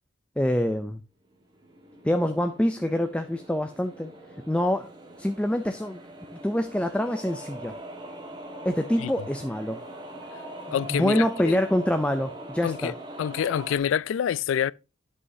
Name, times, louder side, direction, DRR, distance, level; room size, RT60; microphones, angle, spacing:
voice 1, 0.4-1.0 2.0-4.1 4.5-4.9 5.2-6.0 6.4-7.7 8.6-9.8 10.7-12.9, left 1 dB, 5° left, 0.4 m, -25 dB
sound 1, 1.3-13.8, right 1 dB, 20° right, 1.4 m, -42 dB
voice 2, 10.7-11.6 12.6-12.9 13.2-14.7, left 9 dB, 80° left, 0.3 m, -27 dB
11.0 x 5.6 x 2.7 m
head